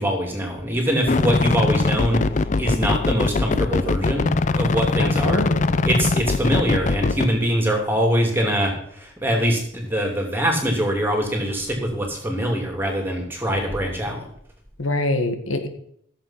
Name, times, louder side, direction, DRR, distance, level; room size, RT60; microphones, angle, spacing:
voice 1, 0.0-2.2 2.6-5.5 5.8-14.2, equal, 10° right, 1 dB, 2.7 m, -23 dB
sound 1, 1.1-7.3, left 3 dB, 35° left, 0.4 m, -22 dB
voice 2, 5.0-5.7 14.8-15.7, left 2 dB, 80° left, 6 dB, 1.7 m, -24 dB
14.5 x 7.5 x 5.7 m, 0.69 s
head